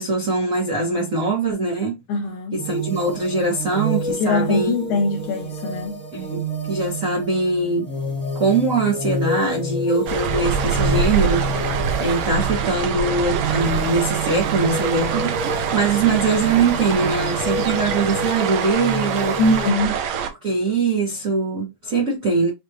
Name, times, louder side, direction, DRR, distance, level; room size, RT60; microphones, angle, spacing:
voice 1, 0.0-2.0 2.5-4.7 6.1-7.9 8.3-11.5 12.0-19.4 20.4-22.5, right 3 dB, 45° right, 1.1 m, -22 dB
voice 2, 2.1-2.6 4.2-6.0 19.4-20.0, left 2 dB, 75° left, 2.3 m, -22 dB
sound 1, 2.6-19.7, equal, 45° left, 1.0 m, -29 dB
sound 2, 10.1-20.3, right 7 dB, 70° right, 2.0 m, -25 dB
sound 3, 10.3-18.3, right 6 dB, 90° right, 1.2 m, -33 dB
7.1 x 2.6 x 2.7 m
omnidirectional pair, 3.6 m